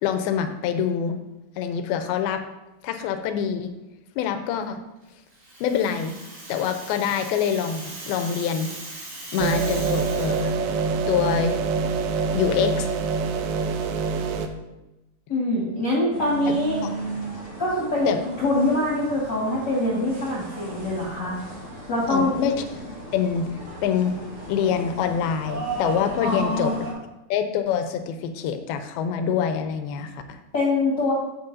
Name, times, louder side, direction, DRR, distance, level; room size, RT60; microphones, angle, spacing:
voice 1, 0.0-1.2 1.6-2.4 2.8-3.7 4.2-4.8 5.6-6.2 6.5-8.7 9.3-10.5 11.1-11.6 12.3-12.9 16.5-16.6 16.8-16.9 18.1-18.2 22.1-22.5 23.1-23.5 23.8-24.2 24.5-26.7 27.3-30.4, left 8 dB, 85° left, 8 dB, 2.5 m, -25 dB
Rattle (instrument), 5.3-10.5, right 2 dB, 55° right, 4.1 m, -39 dB
sound 1, 9.4-14.5, right 5 dB, 80° right, 2.1 m, -25 dB
voice 2, 15.3-16.8 17.6-21.4 21.9-22.4 26.2-26.8 30.5-31.1, left 1 dB, 40° left, -5 dB, 1.7 m, -24 dB
sound 2, 16.1-26.9, right 2 dB, 30° right, 2.1 m, -36 dB
10.5 x 7.6 x 2.7 m, 0.99 s
omnidirectional pair, 4.4 m